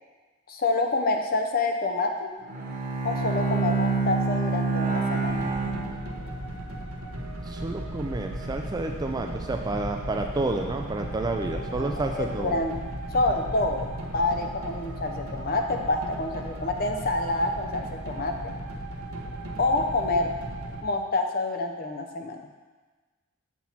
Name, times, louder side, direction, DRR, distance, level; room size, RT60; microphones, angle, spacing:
voice 1, 0.5-2.3 3.0-5.4 11.5-12.8 13.1-18.5 19.6-20.3 20.8-22.4, left 2 dB, 40° left, 4 dB, 0.7 m, -27 dB
Bowed string instrument, 2.4-6.5, right 4 dB, 35° right, 1.2 m, -27 dB
sound 1, 5.2-20.8, right 1 dB, 75° right, 1.0 m, -36 dB
voice 2, 7.5-12.6, right 2 dB, 20° right, 4 dB, 0.3 m, -30 dB
7.3 x 6.0 x 4.3 m, 1.3 s
head